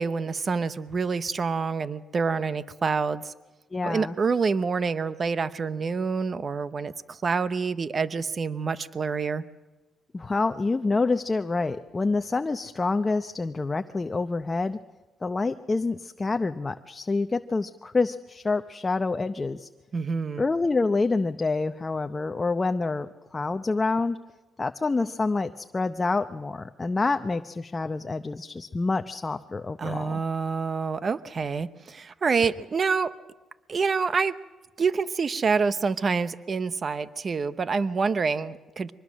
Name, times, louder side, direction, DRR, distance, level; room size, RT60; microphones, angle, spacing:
voice 1, 0.0-3.3 3.8-9.4 19.9-20.5 29.8-33.1 33.7-34.4 34.8-38.9, right 5 dB, 40° right, 14 dB, 0.8 m, -27 dB
voice 2, 3.7-4.1 10.1-14.8 15.2-19.7 20.4-24.2 24.6-30.2, left 3 dB, 25° left, 8 dB, 0.7 m, -27 dB
24.5 x 20.0 x 6.3 m, 1.2 s
cardioid pair, 90°, 0 cm